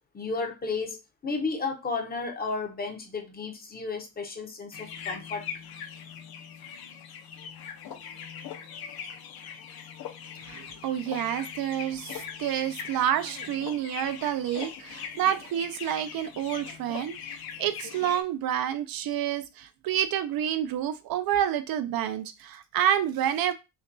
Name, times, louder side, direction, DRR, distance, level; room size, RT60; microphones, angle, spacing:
voice 1, 0.1-1.0 1.2-5.5, left 4 dB, 25° left, 0.6 m, -33 dB
sound 1, 4.7-18.2, left 7 dB, 60° left, 0.7 m, -41 dB
voice 2, 10.5-17.3 17.6-23.5, right 10 dB, 60° right, 0.5 m, -28 dB
5.7 x 2.3 x 2.5 m
cardioid pair, 170°, 41 cm